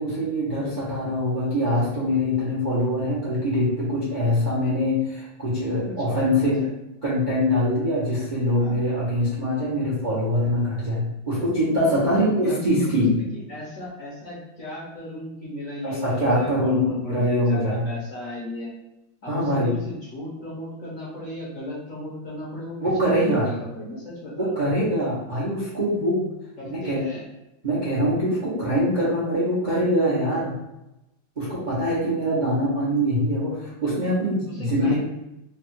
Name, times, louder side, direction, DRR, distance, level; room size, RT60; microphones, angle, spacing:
voice 1, 0.0-6.6 7.0-13.1 15.8-17.9 19.3-19.7 22.8-23.5 24.4-26.3 26.6-27.0 27.6-30.5 31.4-35.0, equal, 40° right, -8 dB, 0.7 m, -23 dB
voice 2, 5.9-6.7 8.5-8.8 12.1-18.7 19.2-24.6 26.6-27.2 34.5-35.0, left 1 dB, 50° left, -6 dB, 1.2 m, -36 dB
3.6 x 2.4 x 4.4 m, 0.90 s
omnidirectional pair, 2.2 m